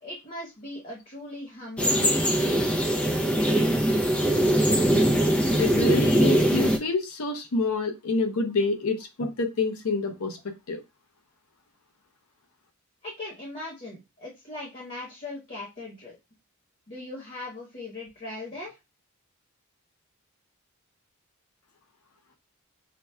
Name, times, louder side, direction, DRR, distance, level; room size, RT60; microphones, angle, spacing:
voice 1, 0.0-3.0 13.0-16.2 16.9-18.8, left 2 dB, 35° left, -3 dB, 1.1 m, -39 dB
sound 1, 1.8-6.8, right 1 dB, 5° left, 0.4 m, -22 dB
voice 2, 5.6-10.8, left 3 dB, 75° left, 5 dB, 0.6 m, -27 dB
5.7 x 2.1 x 2.2 m, 0.24 s
head